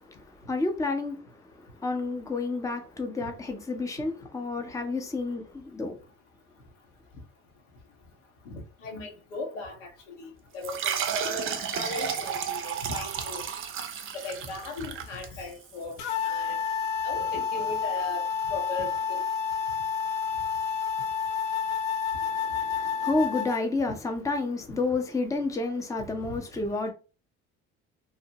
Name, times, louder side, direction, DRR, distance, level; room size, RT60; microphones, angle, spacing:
voice 1, 0.1-1.5 1.8-6.0 22.2-26.9, left 3 dB, 10° left, 0.6 m, -30 dB
voice 2, 8.8-13.4 14.1-16.0 16.2-16.6 17.0-19.2 23.9-24.0 26.3-26.4, left 3 dB, 80° left, 1.0 m, -38 dB
sound 1, 10.6-15.8, right 8 dB, 35° right, 0.5 m, -32 dB
sound 2, 16.0-23.6, left 6 dB, 60° left, 0.6 m, -29 dB
2.9 x 2.1 x 2.8 m
hypercardioid pair, 65°, 35 cm